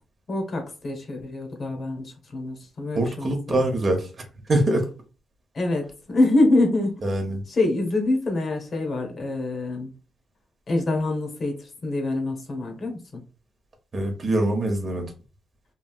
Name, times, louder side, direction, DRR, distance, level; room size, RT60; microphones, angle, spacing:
voice 1, 0.3-3.6 5.5-7.0 7.5-9.9 10.7-13.2, left 2 dB, 40° left, 0.9 m, -25 dB
voice 2, 2.9-4.9 7.0-7.4 13.9-15.1, right 1 dB, 35° right, 0.8 m, -24 dB
2.9 x 2.7 x 2.3 m
wide cardioid pair, 145°, 0 cm